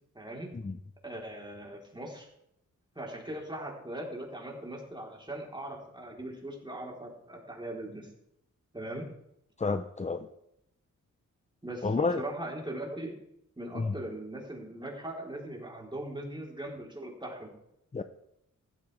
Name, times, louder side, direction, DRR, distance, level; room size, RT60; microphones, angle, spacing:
voice 1, 0.1-0.5 1.0-2.3 3.0-8.1 8.7-9.1 11.6-13.2 13.6-17.5, right 1 dB, 15° right, -2 dB, 3.6 m, -40 dB
voice 2, 9.6-10.3 11.8-12.2 13.7-14.0 17.9-18.0, left 3 dB, 20° left, 9 dB, 0.6 m, -30 dB
15.0 x 12.5 x 3.4 m, 0.79 s
wide cardioid pair, 80°, 31 cm